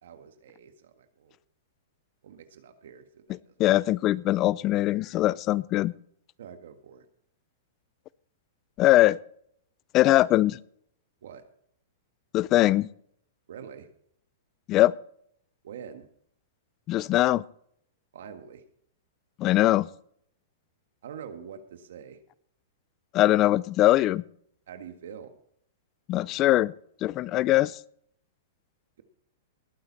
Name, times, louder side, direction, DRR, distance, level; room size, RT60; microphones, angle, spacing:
voice 1, 0.0-1.3 2.2-3.7 6.4-7.0 11.2-11.4 13.5-13.9 15.6-16.1 18.1-18.6 21.0-22.2 24.7-25.4, right 7 dB, 75° right, 8 dB, 1.7 m, -45 dB
voice 2, 3.6-5.9 8.8-9.2 9.9-10.6 12.3-12.9 14.7-14.9 16.9-17.4 19.4-19.9 23.1-24.2 26.1-26.7 27.0-27.8, left 15 dB, 30° left, 21 dB, 0.5 m, -21 dB
19.5 x 9.2 x 4.2 m, 0.66 s
hypercardioid pair, 140°, 0 cm